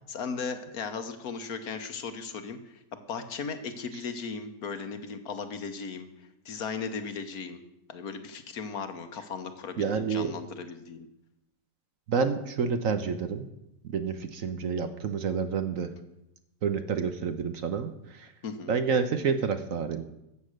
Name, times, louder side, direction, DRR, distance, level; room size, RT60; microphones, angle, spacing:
voice 1, 0.1-7.6 7.9-11.1 18.4-18.8, left 5 dB, 65° left, 8 dB, 1.5 m, -37 dB
voice 2, 9.8-10.3 12.1-13.5 13.8-15.9 16.6-18.3 18.7-20.0, right 5 dB, 60° right, 9 dB, 1.2 m, -29 dB
14.0 x 7.7 x 6.5 m, 0.85 s
omnidirectional pair, 1.7 m